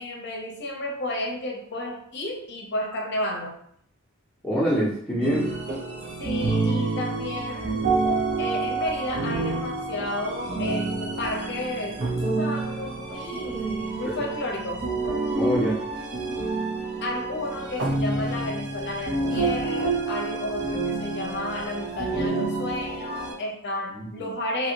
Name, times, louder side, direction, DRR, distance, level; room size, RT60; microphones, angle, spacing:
voice 1, 0.0-3.6 6.2-7.9 8.4-12.0 12.3-14.9 17.0-24.7, left 1 dB, 55° left, 1 dB, 0.6 m, -32 dB
voice 2, 4.4-5.5 14.0-14.3 15.3-15.8 23.9-24.3, equal, ahead, -11 dB, 0.8 m, -25 dB
sound 1, 5.2-23.3, right 3 dB, 50° right, 0.6 m, -28 dB
2.9 x 2.7 x 2.8 m, 0.68 s
head